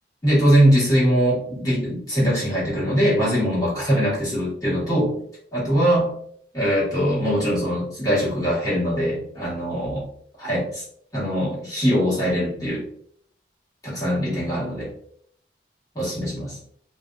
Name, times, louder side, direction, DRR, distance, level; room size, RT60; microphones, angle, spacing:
voice 1, 0.2-5.1 5.5-6.1 6.5-10.0 10.4-10.8 11.1-12.8 13.8-14.9 15.9-16.6, equal, 20° left, -7 dB, 1.4 m, -21 dB
3.2 x 2.6 x 2.5 m, 0.64 s
head